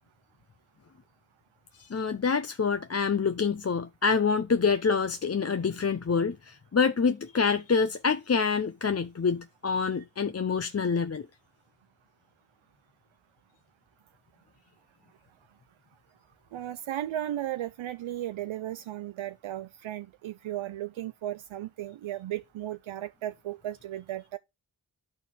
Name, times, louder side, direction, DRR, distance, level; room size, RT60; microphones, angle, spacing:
voice 1, 1.8-11.3, left 5 dB, 30° left, 0.6 m, -26 dB
voice 2, 16.5-24.4, right 13 dB, 80° right, 0.6 m, -35 dB
11.0 x 4.3 x 3.4 m
cardioid pair, 50°, 47 cm